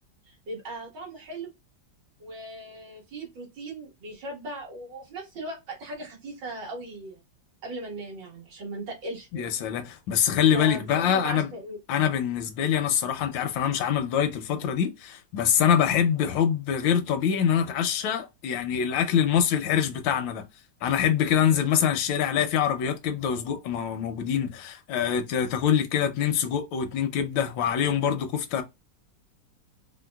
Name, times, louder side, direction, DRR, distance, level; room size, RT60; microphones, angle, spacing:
voice 1, 0.3-1.5 2.2-7.2 7.6-9.5 10.5-11.8, right 1 dB, 75° right, 2.2 m, -38 dB
voice 2, 9.3-11.5 11.9-20.4 20.8-28.6, left 8 dB, 85° left, 1.4 m, -25 dB
4.5 x 2.1 x 2.2 m
omnidirectional pair, 2.0 m